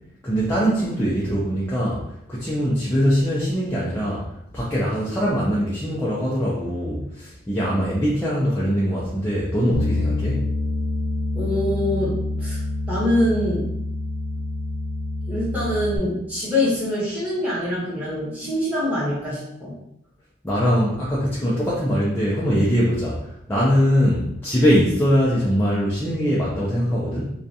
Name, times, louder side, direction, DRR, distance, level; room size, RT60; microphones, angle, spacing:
voice 1, 0.2-2.0 2.3-4.2 4.5-10.5 20.4-23.2 23.5-27.3, equal, 10° left, -8 dB, 0.4 m, -22 dB
Bass guitar, 9.7-16.0, left 2 dB, 85° left, 0.5 m, -26 dB
voice 2, 11.3-12.6 12.9-13.7 15.3-19.7, left 1 dB, 10° right, -9 dB, 0.9 m, -24 dB
2.4 x 2.2 x 2.6 m, 0.79 s
head